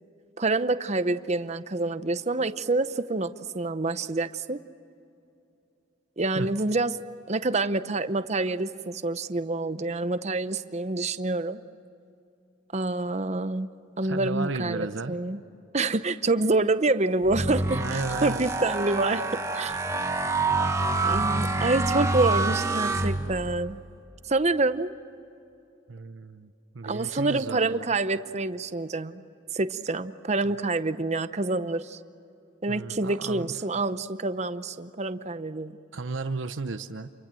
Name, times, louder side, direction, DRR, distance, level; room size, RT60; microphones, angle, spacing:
voice 1, 0.4-4.6 6.2-11.6 12.7-15.4 15.7-19.8 21.0-23.8 24.2-24.9 26.8-29.2 29.5-32.0 32.6-35.8, right 2 dB, 35° right, 12 dB, 0.8 m, -27 dB
voice 2, 14.0-15.2 17.7-18.4 25.9-27.9 30.4-30.6 32.7-33.6 35.9-37.1, right 3 dB, 85° right, 9 dB, 0.9 m, -34 dB
sound 1, 17.2-23.7, right 3 dB, 15° right, 1.5 m, -27 dB
29.0 x 24.0 x 7.7 m, 2.7 s
head